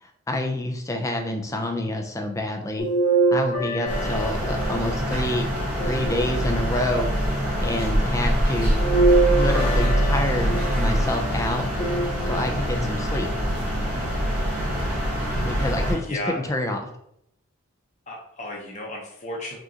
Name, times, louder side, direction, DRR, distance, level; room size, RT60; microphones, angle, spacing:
voice 1, 0.0-2.9 3.3-5.4 5.8-7.1 7.6-8.8 9.3-11.6 12.3-13.3 15.4-16.8, left 1 dB, 15° left, 3 dB, 0.4 m, -27 dB
sound 1, 2.8-5.1 5.8-6.8 8.8-10.9 11.8-12.7 13.3-13.4 14.8-14.9, right 3 dB, 45° left, 1.1 m, -24 dB
sound 2, 3.8-15.9, equal, 5° right, 1.3 m, -24 dB
voice 2, 15.5-16.5 18.1-19.6, left 1 dB, 30° left, -2 dB, 0.8 m, -35 dB
4.9 x 2.5 x 2.8 m, 0.74 s
head